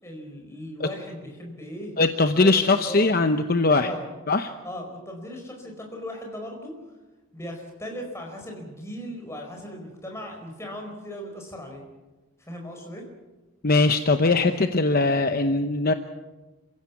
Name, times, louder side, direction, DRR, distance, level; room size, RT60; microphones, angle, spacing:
voice 1, 0.0-1.9 2.4-2.6 2.9-3.1 3.7-4.0 4.6-6.7 7.3-11.8 12.5-13.1, equal, 10° left, 1 dB, 4.6 m, -37 dB
voice 2, 2.0-3.9 4.3-4.5 13.6-15.9, left 3 dB, 40° left, 7 dB, 0.8 m, -21 dB
27.5 x 16.0 x 7.2 m, 1.2 s
head